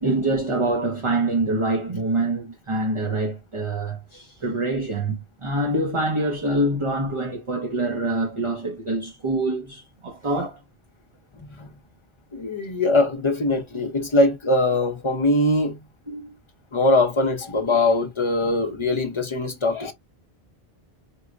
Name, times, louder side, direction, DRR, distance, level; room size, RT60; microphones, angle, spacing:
voice 1, 0.0-10.6 16.1-16.3, right 2 dB, 35° right, 0.6 m, -25 dB
voice 2, 11.4-11.7 12.3-15.8 16.7-19.9, left 2 dB, 30° left, 0.7 m, -22 dB
4.5 x 2.1 x 2.5 m
omnidirectional pair, 1.1 m